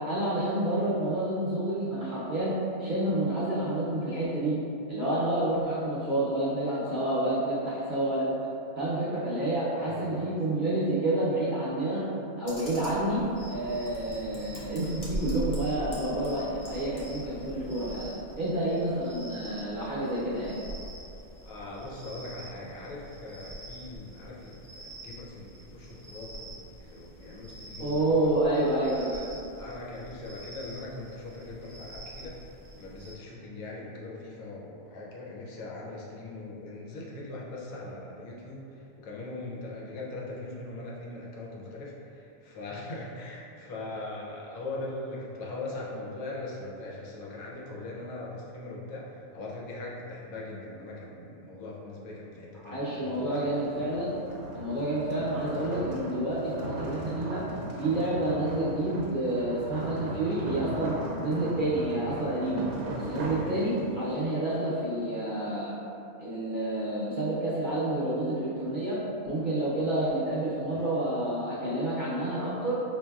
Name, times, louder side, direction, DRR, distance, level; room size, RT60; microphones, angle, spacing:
voice 1, 0.0-2.5 2.8-4.6 4.9-8.3 8.8-12.0 12.4-18.1 18.4-20.5 27.8-29.2 52.5-54.2 54.5-57.4 57.7-62.6 62.9-65.7 66.2-69.0 69.2-72.8, right 1 dB, 50° right, -10 dB, 0.7 m, -29 dB
voice 2, 9.8-10.4 21.4-28.3 29.6-32.4 32.7-53.9 63.3-63.6 70.7-70.8, left 2 dB, 75° left, -4 dB, 1.1 m, -41 dB
Computer keyboard, 12.4-18.1, left 1 dB, 40° left, 0.5 m, -46 dB
sound 1, 13.3-33.1, right 1 dB, 5° right, 0.6 m, -44 dB
sound 2, 53.2-64.1, right 1 dB, 70° right, 1.0 m, -38 dB
5.3 x 2.7 x 2.3 m, 2.7 s
omnidirectional pair, 1.5 m